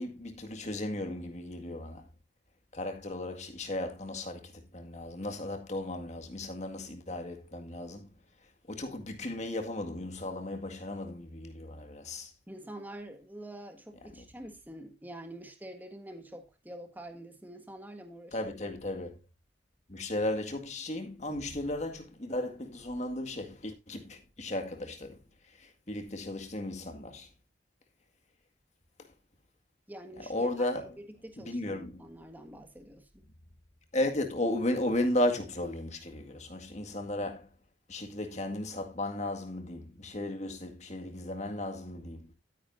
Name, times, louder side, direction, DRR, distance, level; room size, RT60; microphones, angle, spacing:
voice 1, 0.0-2.1 2.7-8.1 8.7-12.3 14.1-14.2 18.3-19.2 19.9-25.2 25.5-27.3 29.0-29.1 30.2-31.0 31.4-32.0 33.9-37.5 37.9-42.3, left 1 dB, 40° left, 1.9 m, -35 dB
voice 2, 12.5-18.5 29.9-30.7 31.2-33.1, right 1 dB, 10° right, 1.7 m, -46 dB
13.0 x 9.5 x 2.6 m
head